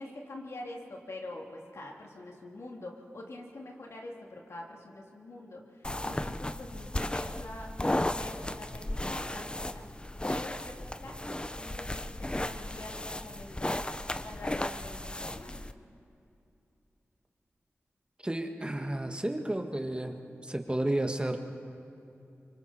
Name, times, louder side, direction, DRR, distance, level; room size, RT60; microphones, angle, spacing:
voice 1, 0.0-5.6 6.0-9.8 10.2-13.9 14.2-15.7, left 2 dB, 75° left, -1 dB, 2.8 m, -45 dB
sound 1, 5.8-15.7, left 1 dB, 20° left, 0.7 m, -35 dB
voice 2, 18.2-20.1 20.4-21.4, right 1 dB, 20° right, 4 dB, 1.7 m, -31 dB
25.5 x 24.5 x 4.4 m, 2.7 s
cardioid pair, 45°, 5 cm